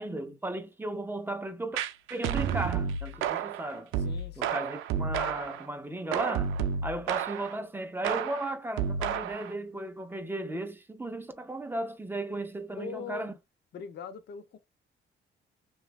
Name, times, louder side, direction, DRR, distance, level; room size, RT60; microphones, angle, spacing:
voice 1, 0.0-1.8 2.1-3.9 4.4-6.5 6.8-13.3, right 1 dB, 10° right, 0.5 m, -35 dB
sound 1, 1.7-5.7 6.1-7.6 8.0-9.5, right 7 dB, 90° right, 0.4 m, -31 dB
voice 2, 4.0-4.5 12.8-13.4 13.7-14.6, left 5 dB, 60° left, 0.6 m, -41 dB
3.0 x 2.2 x 2.4 m
cardioid pair, 90°, 20 cm